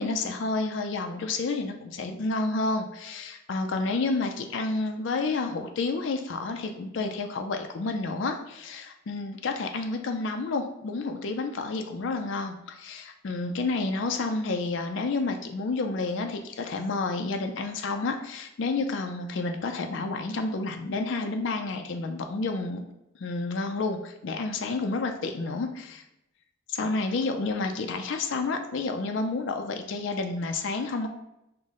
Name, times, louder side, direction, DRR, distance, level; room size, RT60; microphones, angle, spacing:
voice 1, 0.0-22.8 23.2-26.0 26.7-31.1, left 3 dB, 65° left, 5 dB, 0.4 m, -30 dB
5.6 x 2.1 x 3.6 m, 0.87 s
head